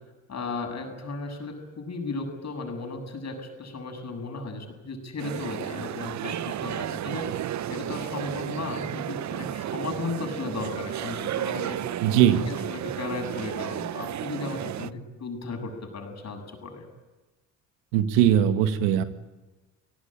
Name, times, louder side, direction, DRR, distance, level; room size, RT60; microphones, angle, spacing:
voice 1, 0.3-7.3 7.7-11.8 12.5-16.9, left 3 dB, 45° left, 5 dB, 7.8 m, -35 dB
sound 1, 5.2-14.9, right 11 dB, 50° right, 0.8 m, -33 dB
voice 2, 12.0-12.5 17.9-19.0, right 10 dB, 85° right, 9 dB, 1.9 m, -20 dB
29.5 x 18.0 x 9.0 m, 1.2 s
supercardioid pair, 65°, 37 cm